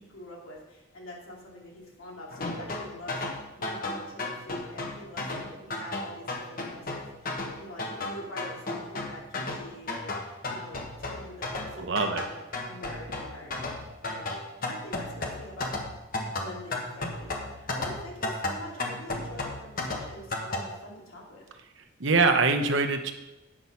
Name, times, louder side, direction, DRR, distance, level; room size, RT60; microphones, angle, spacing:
voice 1, 0.0-7.3 7.6-14.3 14.6-15.7 16.4-21.4, left 1 dB, 90° left, -2 dB, 2.7 m, -45 dB
sound 1, 2.3-20.7, left 2 dB, 45° left, 1.2 m, -34 dB
voice 2, 11.8-12.2 22.0-23.1, right 4 dB, 65° right, 5 dB, 0.9 m, -23 dB
8.8 x 6.2 x 5.6 m, 1.0 s
head